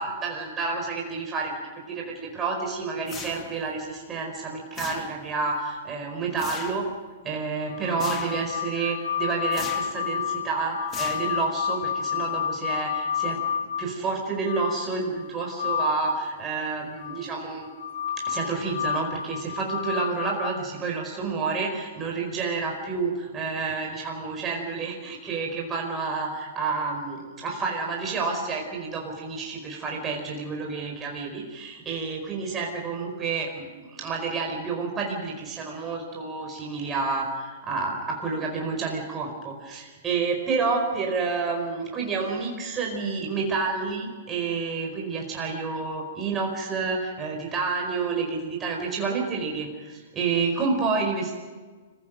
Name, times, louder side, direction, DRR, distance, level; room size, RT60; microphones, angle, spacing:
voice 1, 0.0-6.9 7.2-13.4 13.8-17.7 18.2-51.3, right 4 dB, 25° right, 1 dB, 4.8 m, -29 dB
sound 1, 3.1-3.7 4.7-5.4 6.4-6.9 8.0-8.5 9.5-10.0 10.9-11.6, left 6 dB, 25° left, 2.7 m, -39 dB
sound 2, 7.7-16.2 17.0-20.5, left 8 dB, 70° left, 4.1 m, -30 dB
25.5 x 16.0 x 7.8 m, 1.4 s
hypercardioid pair, 120°, 0 cm